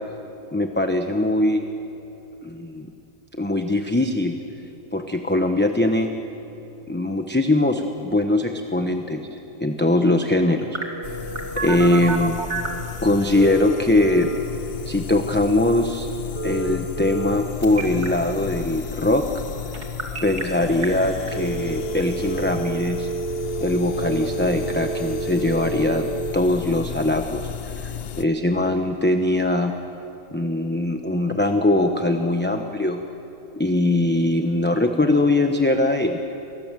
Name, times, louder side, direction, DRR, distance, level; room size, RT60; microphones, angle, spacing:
voice 1, 0.5-1.6 2.4-2.9 3.3-4.4 4.9-6.1 6.9-10.7 11.2-12.4 13.0-14.3 14.8-16.1 16.4-19.4 20.2-23.1 23.6-26.0 26.3-27.5 27.8-29.7 30.3-33.0 33.5-36.2, left 1 dB, 10° left, 4 dB, 0.9 m, -21 dB
Telephone, 10.7-12.8 13.3-14.4 16.4-17.4 17.6-18.1 19.7-20.4 20.8-20.9 21.3-26.3, right 4 dB, 50° right, 2.7 m, -29 dB
sound 1, 11.0-28.3, left 7 dB, 55° left, 0.9 m, -34 dB
29.0 x 23.5 x 7.6 m, 3.0 s
omnidirectional pair, 1.5 m